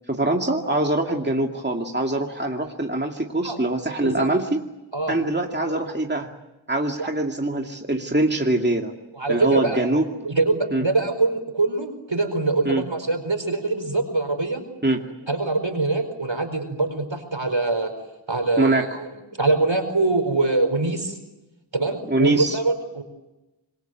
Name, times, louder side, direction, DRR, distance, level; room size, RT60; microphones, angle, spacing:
voice 1, 0.1-4.6 5.1-6.3 6.7-8.9 9.3-10.0 10.7-10.8 12.6-12.8 14.8-15.0 18.6-18.9 22.1-22.6, right 2 dB, 20° right, 2 dB, 2.4 m, -23 dB
voice 2, 9.1-9.8 10.2-14.6 15.3-17.9 18.3-19.1 19.4-21.2 21.7-23.0, right 3 dB, 70° right, 7 dB, 4.8 m, -24 dB
26.5 x 22.5 x 9.3 m, 1.0 s
wide cardioid pair, 45°, 47 cm